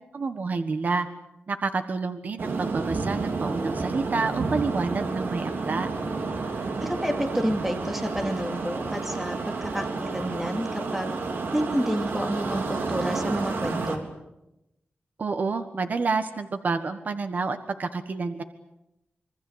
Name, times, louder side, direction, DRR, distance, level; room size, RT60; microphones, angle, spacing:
voice 1, 0.1-1.1 1.5-5.9 15.2-18.4, right 4 dB, 50° right, 9 dB, 1.4 m, -29 dB
sound 1, 2.4-14.0, right 3 dB, 75° right, 3.5 m, -30 dB
voice 2, 6.8-11.1 11.5-14.1, equal, 5° right, 5 dB, 2.6 m, -29 dB
26.0 x 24.0 x 8.1 m, 0.88 s
wide cardioid pair, 155°, 4 cm